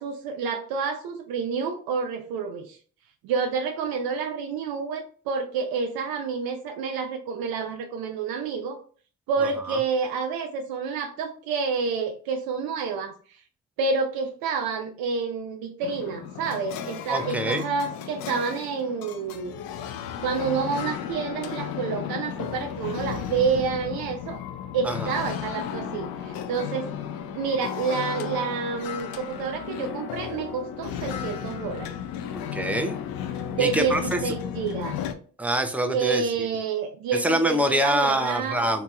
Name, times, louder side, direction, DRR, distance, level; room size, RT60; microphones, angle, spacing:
voice 1, 0.0-2.8 3.2-8.8 9.3-13.4 13.8-19.6 20.2-24.4 24.7-26.9 27.3-31.9 33.5-35.0 35.9-38.6, right 5 dB, 80° right, 4 dB, 0.5 m, -28 dB
sound 1, 15.8-35.1, left 9 dB, 75° left, 0.5 m, -34 dB
voice 2, 17.1-17.6 24.8-25.1 32.5-33.0 33.6-34.3 35.4-36.2 37.2-38.8, right 1 dB, 5° right, 6 dB, 0.5 m, -25 dB
2.9 x 2.7 x 2.3 m, 0.42 s
supercardioid pair, 60°, 36 cm